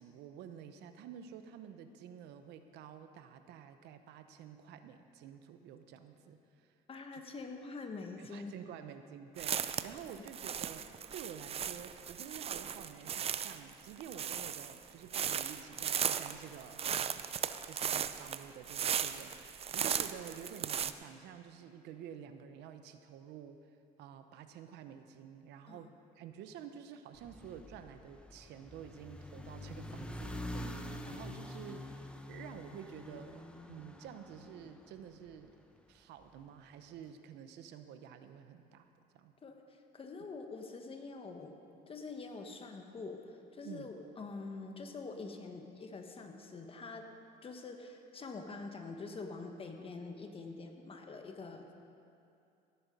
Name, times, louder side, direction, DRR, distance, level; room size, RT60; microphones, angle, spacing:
voice 1, 0.0-6.7 7.1-7.2 8.2-17.3 17.6-23.6 24.0-32.0 32.3-35.6 35.9-38.9 39.1-39.3 43.6-43.9, right 8 dB, 85° right, 9 dB, 0.8 m, -50 dB
voice 2, 6.9-8.5 25.7-25.9 30.5-30.7 31.1-31.2 39.4-41.5 41.9-47.0 47.4-51.7, left 3 dB, 35° left, 4 dB, 1.4 m, -45 dB
sound 1, 9.4-20.9, right 8 dB, 35° right, 0.5 m, -36 dB
sound 2, 27.1-35.5, left 1 dB, 5° left, 0.8 m, -46 dB
17.0 x 8.7 x 5.3 m, 2.6 s
cardioid pair, 110°, 17 cm